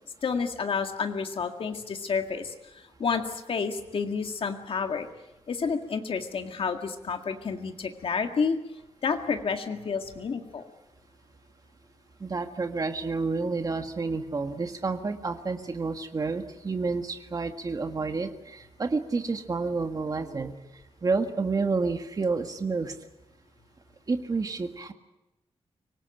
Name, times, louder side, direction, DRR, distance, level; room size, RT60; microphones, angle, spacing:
voice 1, 0.2-2.5 3.0-5.1 5.5-8.6 9.0-10.6, left 5 dB, 60° left, 5 dB, 2.0 m, -30 dB
voice 2, 12.2-20.7 21.0-22.9 24.1-24.9, right 4 dB, 35° right, 6 dB, 1.8 m, -29 dB
24.5 x 19.0 x 9.0 m, 1.0 s
wide cardioid pair, 165°, 10 cm